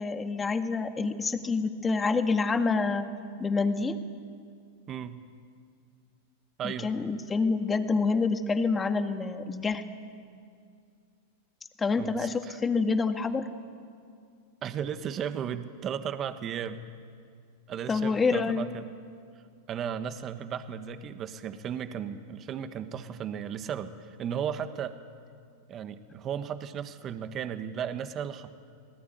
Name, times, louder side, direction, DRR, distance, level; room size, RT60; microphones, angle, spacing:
voice 1, 0.0-3.1 3.4-4.0 6.6-9.8 11.8-13.5 17.9-18.7, left 4 dB, 15° left, 7 dB, 1.9 m, -27 dB
voice 2, 4.9-5.2 6.6-6.9 12.0-12.6 14.6-16.9 17.7-18.9 19.7-25.0 25.7-28.6, right 8 dB, 30° right, 9 dB, 1.5 m, -35 dB
28.0 x 19.0 x 9.4 m, 2.2 s
hypercardioid pair, 115°, 0 cm